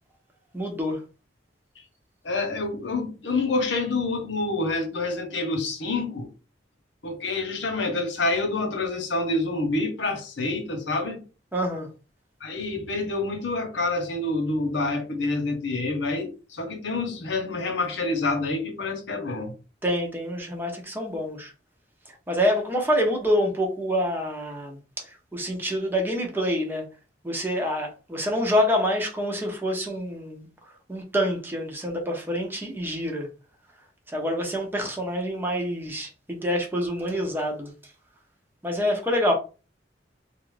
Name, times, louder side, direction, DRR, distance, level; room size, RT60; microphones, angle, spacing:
voice 1, 0.5-1.0 11.5-11.9 19.8-21.5 22.3-26.8 27.2-30.5 30.9-33.3 34.1-37.7 38.6-39.3, equal, 10° right, 0.7 m, -26 dB
voice 2, 2.2-6.3 7.0-11.2 12.4-19.5, left 2 dB, 75° left, 0.8 m, -27 dB
3.0 x 2.5 x 3.2 m
head